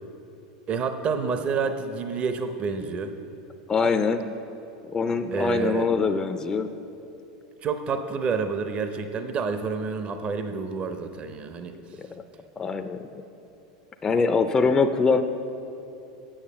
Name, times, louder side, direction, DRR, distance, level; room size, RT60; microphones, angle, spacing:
voice 1, 0.7-3.1 5.3-5.9 7.6-11.8, right 5 dB, 35° right, 8 dB, 0.6 m, -28 dB
voice 2, 3.7-4.2 4.9-6.7 12.0-12.1 12.6-13.2 14.0-15.2, left 4 dB, 20° left, 7 dB, 0.4 m, -23 dB
8.8 x 6.8 x 6.6 m, 3.0 s
hypercardioid pair, 105°, 3 cm